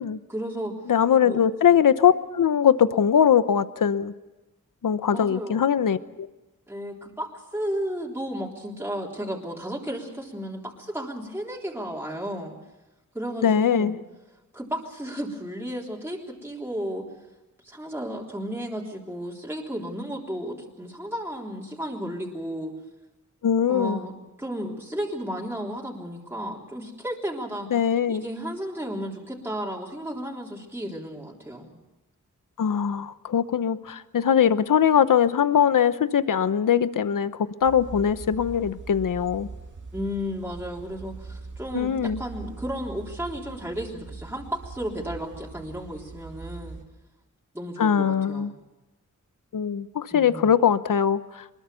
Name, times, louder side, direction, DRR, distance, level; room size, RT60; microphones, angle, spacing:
voice 1, 0.3-0.7 1.2-1.4 5.1-5.6 6.7-12.6 13.1-13.9 14.5-17.1 17.6-22.7 23.7-27.7 28.1-31.7 39.9-46.8 47.5-48.5 50.1-50.5, equal, 5° right, -3 dB, 3.6 m, -33 dB
voice 2, 0.9-4.1 4.8-6.3 13.4-14.0 23.4-24.0 27.7-28.2 32.6-39.5 41.7-42.2 47.8-48.5 49.5-51.6, left 8 dB, 90° left, 13 dB, 0.9 m, -21 dB
sound 1, 37.6-46.8, right 4 dB, 70° right, 2.5 m, -41 dB
23.5 x 21.0 x 7.0 m, 1.0 s
wide cardioid pair, 105°, 32 cm